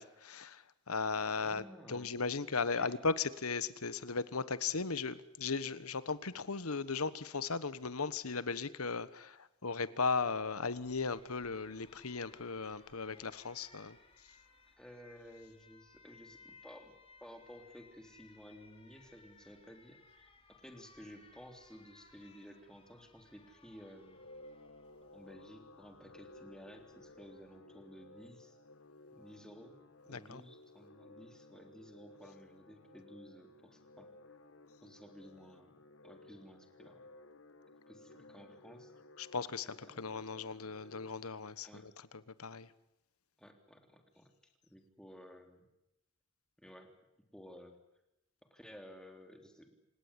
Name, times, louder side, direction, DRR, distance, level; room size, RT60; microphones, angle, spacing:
voice 1, 0.0-14.0 30.1-30.4 39.2-41.9 42.4-42.7, left 4 dB, 90° left, 15 dB, 1.3 m, -37 dB
voice 2, 1.4-2.2 2.8-3.0 14.8-16.9 17.2-24.2 25.1-28.6 29.1-29.8 30.0-34.4 34.8-35.7 36.0-37.1 37.9-38.9 39.8-40.0 41.6-41.9 43.4-44.3 44.6-45.7 46.6-46.9 47.3-47.7 48.5-49.7, equal, 5° left, 4 dB, 3.5 m, -55 dB
Alarm, 10.3-27.6, left 4 dB, 25° left, 4.0 m, -63 dB
sound 1, 24.0-41.1, left 2 dB, 65° left, 1.5 m, -57 dB
28.0 x 18.0 x 10.0 m, 0.89 s
head